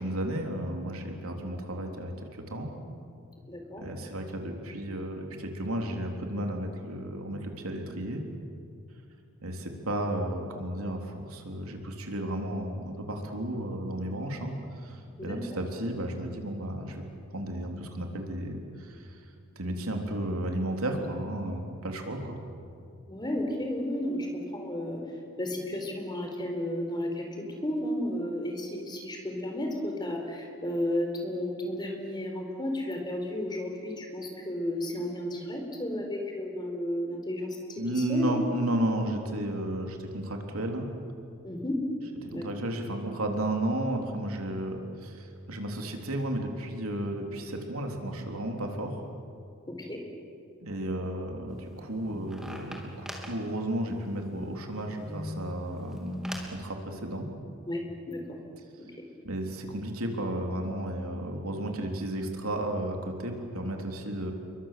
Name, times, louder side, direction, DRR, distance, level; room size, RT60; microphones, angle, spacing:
voice 1, 0.0-2.7 3.8-8.2 9.4-17.0 17.3-19.2 19.6-22.4 37.8-40.9 42.2-49.0 50.6-56.2 56.4-57.3 59.2-64.3, right 1 dB, 80° right, 3 dB, 3.5 m, -33 dB
voice 2, 3.5-3.8 15.2-15.4 23.1-25.0 25.4-38.3 41.4-41.8 42.3-42.4 49.7-50.0 57.7-57.8 58.1-58.2, left 1 dB, 20° left, 2 dB, 4.3 m, -33 dB
sound 1, 51.5-56.6, left 1 dB, 5° right, 3.0 m, -42 dB
29.0 x 23.0 x 7.6 m, 2.5 s
head